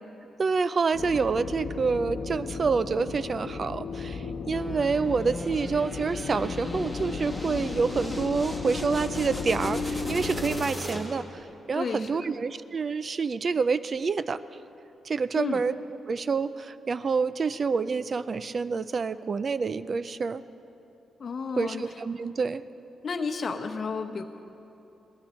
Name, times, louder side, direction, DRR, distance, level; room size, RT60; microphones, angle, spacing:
voice 1, 0.4-14.4 15.0-15.7 16.1-20.4 21.6-22.6, right 5 dB, 40° right, 14 dB, 0.4 m, -27 dB
sound 1, 0.9-10.6, left 4 dB, 70° left, 1.1 m, -34 dB
sound 2, 4.5-11.4, equal, 10° right, 1.7 m, -39 dB
voice 2, 11.7-12.2 15.3-15.6 21.2-21.8 23.0-24.2, left 5 dB, 45° left, 6 dB, 0.9 m, -32 dB
19.5 x 12.5 x 4.4 m, 2.9 s
cardioid pair, 135°, 0 cm